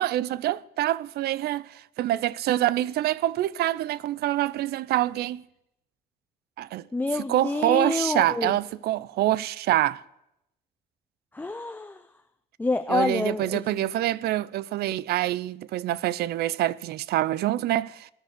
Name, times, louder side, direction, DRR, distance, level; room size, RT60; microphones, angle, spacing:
voice 1, 0.0-5.4 6.6-6.8 7.3-10.0 12.9-18.1, right 14 dB, 70° right, 0.6 m, -26 dB
voice 2, 6.9-8.6 11.3-12.0 12.6-13.9, left 2 dB, 10° left, 0.5 m, -28 dB
19.5 x 10.5 x 6.6 m
cardioid pair, 110°, 17 cm